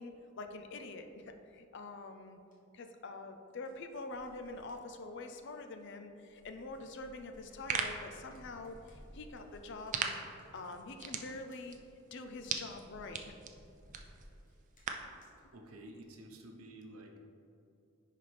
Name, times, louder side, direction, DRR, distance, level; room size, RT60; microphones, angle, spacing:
voice 1, 0.0-2.4 2.7-10.2 10.5-11.8 12.1-13.3, left 3 dB, 55° left, 6 dB, 0.5 m, -45 dB
sound 1, 2.5-2.6 3.5-5.9 6.2-15.4, equal, 40° left, 1.2 m, -60 dB
sound 2, 7.3-15.2, right 6 dB, 35° right, 0.4 m, -42 dB
voice 2, 15.5-17.2, right 1 dB, 85° right, 2 dB, 0.9 m, -51 dB
10.5 x 4.2 x 3.4 m, 2.7 s
head